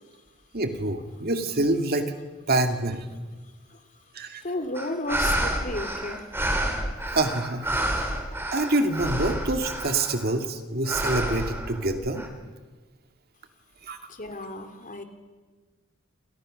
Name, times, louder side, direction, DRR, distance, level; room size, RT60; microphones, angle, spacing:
voice 1, 0.5-2.1 2.5-3.1 4.1-4.4 7.1-7.7 8.5-12.3 13.8-14.0, right 2 dB, 45° right, 6 dB, 2.4 m, -26 dB
voice 2, 4.4-6.2 14.1-15.0, left 2 dB, 40° left, 7 dB, 3.0 m, -33 dB
sound 1, 4.7-10.3 10.9-12.3, right 1 dB, 10° right, 3.9 m, -29 dB
29.5 x 28.5 x 6.6 m, 1.3 s
head